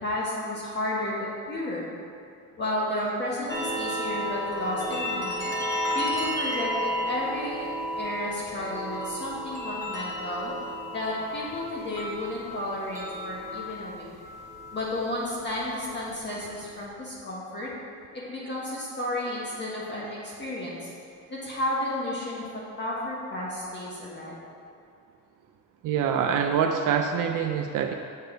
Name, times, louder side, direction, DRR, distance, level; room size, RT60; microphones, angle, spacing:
voice 1, 0.0-1.9 2.6-5.5 5.9-7.7 7.9-10.5 10.9-14.0 14.7-17.7 18.1-20.9 21.3-24.4, left 1 dB, 30° left, -6 dB, 1.4 m, -32 dB
sound 1, 3.5-16.8, left 1 dB, 10° left, 1.4 m, -33 dB
voice 2, 25.8-27.9, right 7 dB, 65° right, 4 dB, 0.6 m, -25 dB
7.8 x 7.2 x 3.9 m, 2.4 s
cardioid pair, 125°, 33 cm